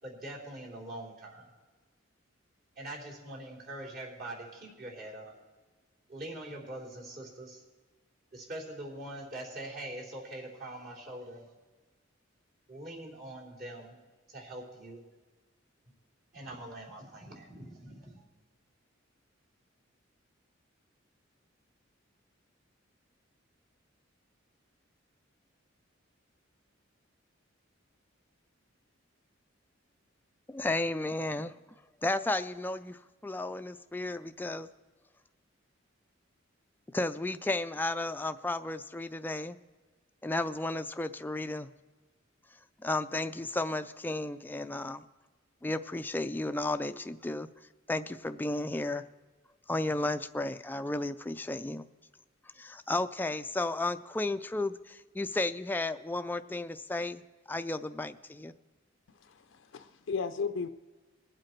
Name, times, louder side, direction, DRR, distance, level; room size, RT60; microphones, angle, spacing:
voice 1, 0.0-1.5 2.8-5.4 6.1-7.6 8.3-11.4 12.7-14.0 14.3-15.0 16.3-18.3, right 1 dB, 50° right, -4 dB, 3.6 m, -43 dB
voice 2, 30.5-31.5 32.0-34.7 36.9-39.6 40.2-41.7 42.8-45.0 45.6-47.5 47.9-49.0 49.7-51.8 52.6-57.2 57.5-58.5, left 2 dB, 10° left, 10 dB, 0.4 m, -33 dB
voice 3, 59.2-60.7, left 5 dB, 65° left, 9 dB, 0.5 m, -35 dB
21.0 x 7.7 x 4.5 m, 1.3 s
head